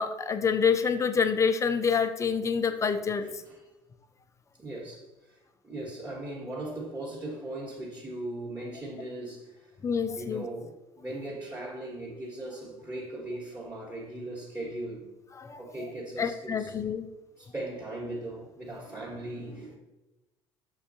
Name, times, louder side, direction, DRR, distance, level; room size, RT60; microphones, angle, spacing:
voice 1, 0.0-3.3 9.8-10.4 15.4-15.6 16.2-17.1, left 6 dB, 20° left, 9 dB, 0.4 m, -27 dB
voice 2, 3.2-3.7 4.6-5.4 5.6-9.7 10.2-15.1 15.6-16.8 17.4-19.8, right 1 dB, 20° right, -6 dB, 1.1 m, -39 dB
6.3 x 2.3 x 2.7 m, 1.0 s
hypercardioid pair, 70°, 14 cm